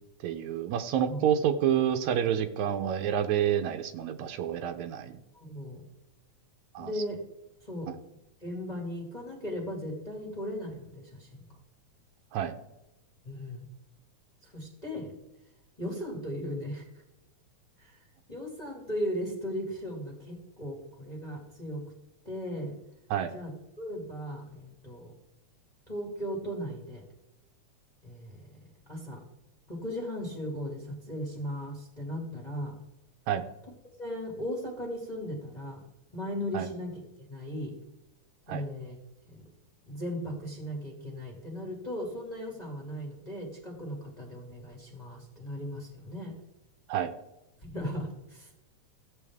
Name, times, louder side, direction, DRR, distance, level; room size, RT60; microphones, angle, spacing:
voice 1, 0.2-5.1 6.8-6.9 12.3-12.6 23.1-23.3 33.3-33.4 36.5-36.7 38.5-38.6 46.9-47.1, right 9 dB, 80° right, 8 dB, 2.0 m, -28 dB
voice 2, 5.3-5.8 6.8-7.2 7.6-7.9 8.4-11.4 13.2-13.6 14.4-15.1 15.8-16.9 17.8-18.0 18.3-21.8 22.2-22.7 23.3-23.5 23.8-25.1 25.9-27.0 28.0-28.5 28.9-29.2 29.7-32.8 34.0-35.8 36.1-36.9 37.2-37.7 38.5-39.0 39.3-39.4 39.8-46.3 47.6-48.5, equal, 20° left, 0 dB, 1.6 m, -37 dB
14.5 x 8.1 x 3.5 m, 0.94 s
omnidirectional pair, 3.3 m